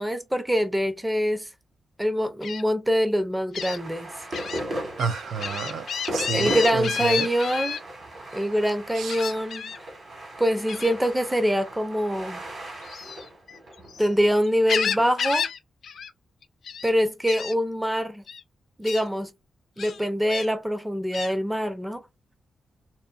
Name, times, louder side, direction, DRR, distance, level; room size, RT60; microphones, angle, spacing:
voice 1, 0.0-1.5 2.0-4.1 6.3-7.8 8.3-9.9 10.4-12.4 14.0-15.4 16.8-18.2 18.8-19.3 19.8-22.0, equal, 5° right, 0.4 m, -24 dB
Gull seagull, 2.4-2.6 3.5-3.8 4.3-4.6 5.0-7.8 9.1-9.8 10.7-11.0 12.8-14.1 14.4-15.6 15.8-16.1 16.4-16.9 17.3-17.5 18.3-18.4 18.8-19.0 19.8-20.5 21.1-21.3, left 7 dB, 65° left, 0.4 m, -30 dB
sound 1, 3.6-15.1, right 1 dB, 45° right, 1.2 m, -37 dB
voice 2, 5.0-5.9 6.1-7.3 8.9-9.2, right 6 dB, 90° right, 0.5 m, -30 dB
2.5 x 2.5 x 2.3 m
wide cardioid pair, 160°, 0 cm